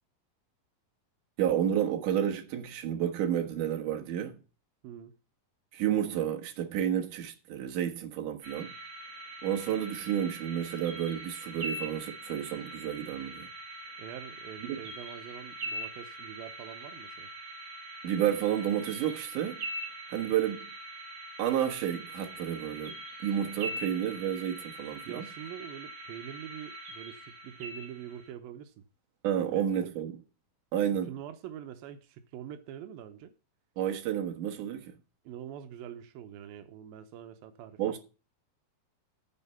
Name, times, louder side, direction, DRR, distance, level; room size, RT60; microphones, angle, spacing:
voice 1, 1.4-4.4 5.7-8.7 9.4-13.5 14.7-14.8 18.0-19.6 20.1-20.7 21.4-25.3 29.2-30.2 30.7-31.1 33.8-34.9 37.8-38.0, right 10 dB, 65° right, 2.8 m, -31 dB
voice 2, 4.8-5.2 14.0-17.3 25.0-28.8 29.4-29.9 31.1-33.3 35.2-38.0, right 10 dB, 90° right, 2.7 m, -45 dB
sound 1, 8.4-28.3, right 1 dB, 35° right, 3.5 m, -43 dB
9.3 x 6.7 x 5.5 m
omnidirectional pair, 4.0 m